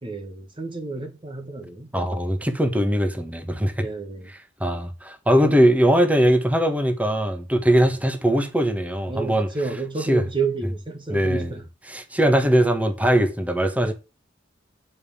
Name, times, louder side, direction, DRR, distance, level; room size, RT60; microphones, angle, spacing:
voice 1, 0.0-1.9 3.8-4.3 9.1-11.6 13.7-13.9, right 4 dB, 30° right, 1.3 m, -30 dB
voice 2, 1.9-3.8 4.6-9.5 10.1-10.2 11.1-11.5 11.9-13.9, equal, 10° right, 1.5 m, -20 dB
9.3 x 5.6 x 7.1 m
head